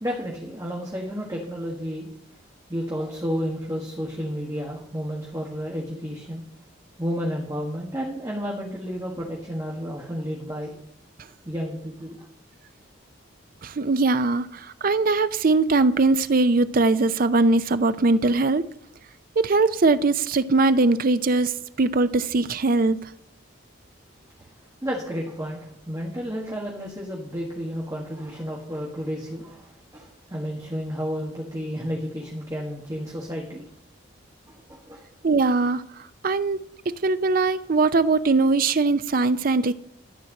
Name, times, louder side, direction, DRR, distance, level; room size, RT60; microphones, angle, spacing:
voice 1, 0.0-2.1 2.7-6.4 7.0-10.7 11.4-12.2 24.8-25.6 25.9-33.6 34.5-35.0, equal, 15° right, -3 dB, 1.6 m, -31 dB
voice 2, 13.6-18.6 19.4-21.5 21.8-23.0 35.2-35.8 36.2-39.7, right 3 dB, 45° right, 13 dB, 0.5 m, -21 dB
13.0 x 4.6 x 7.4 m, 0.74 s
head